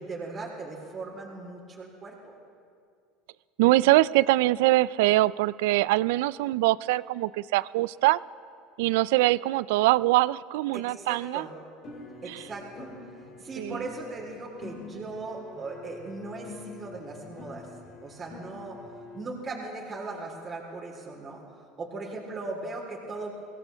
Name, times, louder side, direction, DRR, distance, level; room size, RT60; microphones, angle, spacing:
voice 1, 0.0-2.3 10.7-11.5 12.2-12.9 13.4-17.7 18.0-18.8 19.1-21.4 21.8-23.3, right 3 dB, 30° right, -3 dB, 3.6 m, -38 dB
voice 2, 3.6-8.2 8.8-11.4 12.3-12.4 13.6-13.8, right 18 dB, 75° right, 20 dB, 0.3 m, -23 dB
sound 1, 11.8-19.2, left 3 dB, 50° left, 2.6 m, -46 dB
23.5 x 16.5 x 3.5 m, 2.3 s
supercardioid pair, 95°, 0 cm